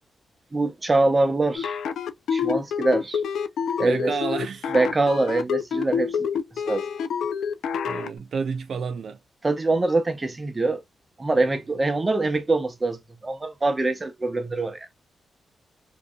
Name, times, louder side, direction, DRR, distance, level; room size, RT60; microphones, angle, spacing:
voice 1, 0.5-1.7 2.3-3.2 3.8-4.1 4.7-6.3 6.7-6.9 9.4-10.8 11.2-14.9, right 2 dB, 25° right, 0.6 m, -24 dB
sound 1, 1.5-8.1, left 7 dB, 80° left, 0.4 m, -27 dB
voice 2, 3.8-4.7 7.9-9.2 11.4-11.5, right 5 dB, 65° right, 0.4 m, -30 dB
2.5 x 2.3 x 2.3 m
cardioid pair, 95°, 0 cm